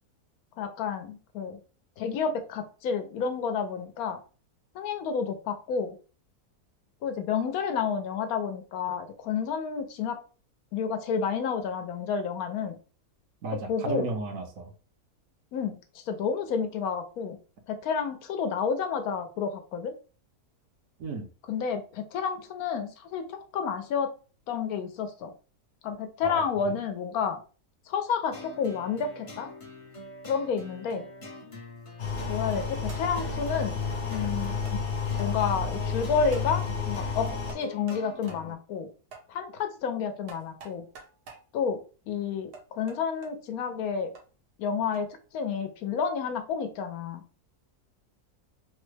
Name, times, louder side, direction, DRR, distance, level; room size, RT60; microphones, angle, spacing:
voice 1, 0.6-1.6 2.0-4.2 4.7-5.9 7.0-10.2 10.7-12.8 13.5-14.1 15.5-17.4 17.7-19.9 21.5-24.1 24.5-25.3 25.8-27.4 27.9-29.5 30.2-31.0 32.3-33.8 34.1-34.8 35.2-38.9 39.3-40.9 41.5-44.1 44.6-45.1 45.3-47.2, left 6 dB, 75° left, 7 dB, 1.0 m, -30 dB
voice 2, 13.4-14.7 21.0-21.3 26.2-26.8, right 3 dB, 70° right, 4 dB, 1.0 m, -34 dB
sound 1, 28.3-38.5, left 2 dB, 35° left, 0.5 m, -45 dB
sound 2, 32.0-37.5, left 5 dB, 55° left, 1.2 m, -31 dB
sound 3, 32.0-32.3 32.9-33.3 34.1-34.2 34.7-34.8 35.2-35.3 36.3-36.5 37.5-38.0 38.3-38.4 39.1-39.3 40.3-41.4 42.5-43.3 44.2-44.3 44.9-45.1, right 3 dB, 85° right, 1.4 m, -47 dB
3.3 x 2.1 x 3.1 m, 0.36 s
omnidirectional pair, 1.6 m